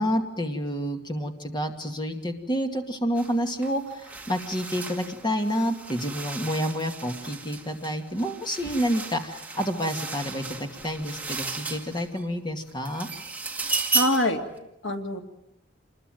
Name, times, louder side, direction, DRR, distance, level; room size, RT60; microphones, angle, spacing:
voice 1, 0.0-13.1, equal, 25° left, 4 dB, 2.3 m, -29 dB
sound 1, 3.2-3.3 3.6-12.3 12.7-14.4, right 3 dB, 10° right, 2.3 m, -34 dB
voice 2, 13.9-15.2, left 1 dB, 80° left, 4 dB, 2.6 m, -26 dB
27.5 x 21.0 x 9.2 m, 0.84 s
head